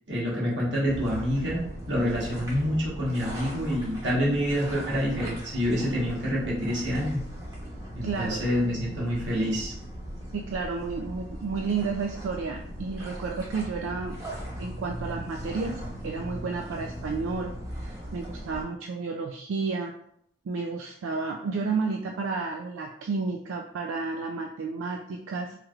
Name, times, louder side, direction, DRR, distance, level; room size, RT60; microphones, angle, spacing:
voice 1, 0.1-7.2 7.9-9.7, equal, 65° right, -5 dB, 1.2 m, -27 dB
sound 1, 0.8-18.6, equal, 15° right, 0.9 m, -39 dB
voice 2, 8.0-8.4 10.3-14.2 14.6-19.9 20.5-25.5, right 4 dB, 85° right, 2 dB, 0.3 m, -31 dB
3.3 x 3.0 x 2.3 m, 0.69 s
head